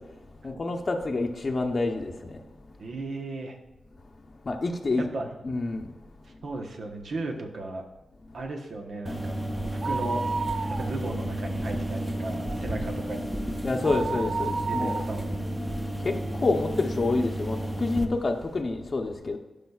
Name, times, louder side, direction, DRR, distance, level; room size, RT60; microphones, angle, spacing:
voice 1, 0.4-2.1 4.5-5.1 5.4-5.8 13.6-15.0 16.4-19.4, left 3 dB, 45° left, 2 dB, 0.7 m, -27 dB
voice 2, 2.8-3.6 5.0-5.4 6.2-7.8 8.3-10.2 10.7-13.4 14.7-15.3, right 2 dB, 70° right, 3 dB, 1.0 m, -36 dB
sound 1, 9.1-18.1, right 1 dB, 5° right, 0.6 m, -32 dB
sound 2, 9.8-11.3 11.6-11.7 12.2-16.6 17.1-17.2 18.0-18.1 18.3-18.4, right 4 dB, 45° right, 0.3 m, -32 dB
12.5 x 5.1 x 2.4 m, 1.1 s
wide cardioid pair, 85°, 0 cm